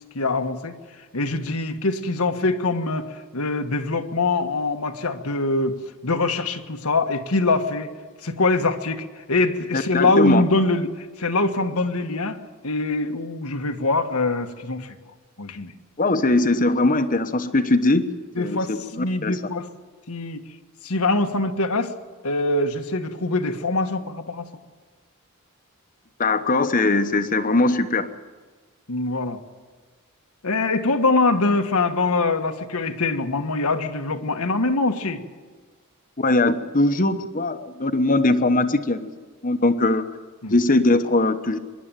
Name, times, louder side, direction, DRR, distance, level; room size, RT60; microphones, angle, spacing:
voice 1, 0.1-0.7 1.1-7.9 8.2-12.4 12.6-14.9 15.4-15.7 18.4-19.7 20.1-20.4 20.8-21.9 22.2-24.5 28.9-29.4 30.4-35.2 40.4-40.5, left 3 dB, 80° left, 6 dB, 1.5 m, -23 dB
voice 2, 9.7-10.4 16.0-18.1 18.4-19.4 26.2-28.1 36.2-39.1 39.4-40.1 40.5-41.6, left 2 dB, 35° left, 9 dB, 1.1 m, -20 dB
25.0 x 11.5 x 9.1 m, 1.4 s
head